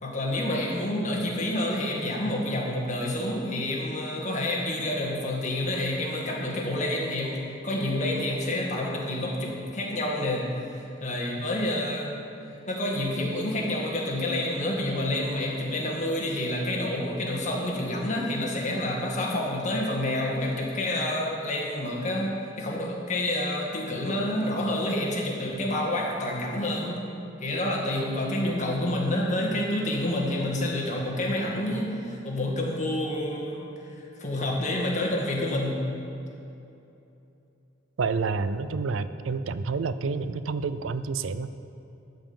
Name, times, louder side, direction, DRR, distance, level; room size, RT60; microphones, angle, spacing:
voice 1, 0.0-7.4 7.6-12.1 12.7-27.1 27.4-35.8, left 1 dB, 40° left, -2 dB, 1.9 m, -28 dB
voice 2, 38.0-41.5, right 4 dB, 90° right, 13 dB, 0.5 m, -29 dB
12.5 x 5.5 x 8.8 m, 2.8 s
head